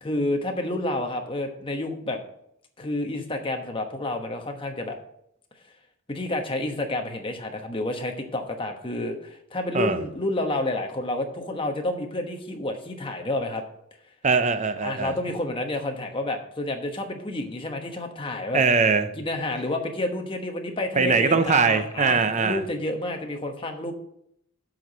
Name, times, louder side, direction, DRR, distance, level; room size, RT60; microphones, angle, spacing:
voice 1, 0.0-2.2 2.8-5.0 6.1-13.6 14.8-18.6 19.1-23.9, left 1 dB, 25° left, 4 dB, 1.1 m, -29 dB
voice 2, 14.2-15.1 18.5-19.1 21.0-22.6, right 4 dB, 35° right, 10 dB, 0.7 m, -21 dB
7.8 x 4.7 x 7.3 m, 0.74 s
head